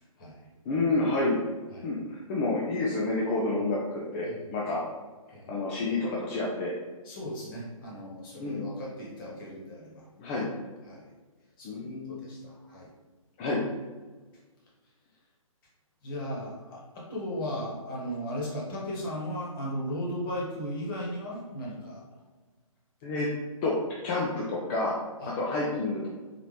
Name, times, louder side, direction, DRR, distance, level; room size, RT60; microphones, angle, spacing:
voice 1, 0.7-1.4 1.8-4.8 5.5-6.7 8.4-8.7 10.2-10.5 11.6-12.2 13.4-13.6 23.0-23.3 23.6-23.7 24.0-25.0 25.2-26.1, left 2 dB, 20° left, -4 dB, 0.4 m, -29 dB
voice 2, 7.0-10.1 10.3-10.4 10.8-11.0 11.6-12.9 16.0-22.0 25.2-25.3, equal, 35° left, -4 dB, 1.4 m, -36 dB
4.1 x 2.9 x 3.3 m, 1.3 s
figure-of-eight pair, 140°, 18 cm